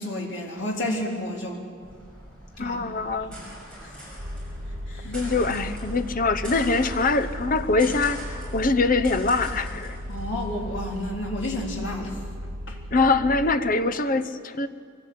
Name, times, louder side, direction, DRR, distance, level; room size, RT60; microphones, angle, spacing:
voice 1, 0.0-1.6 2.6-2.8 3.3-3.4 3.8-4.0 4.9-5.1 10.1-12.2 12.7-12.8, left 1 dB, 60° left, -1 dB, 3.7 m, -31 dB
sound 1, 1.8-11.1, equal, 5° left, 6.7 m, -41 dB
voice 2, 2.6-3.3 5.0-10.0 12.9-14.7, left 3 dB, 40° left, 11 dB, 0.8 m, -23 dB
sound 2, 4.2-13.6, equal, 60° right, 2.0 m, -36 dB
23.0 x 17.0 x 8.6 m, 2.1 s
head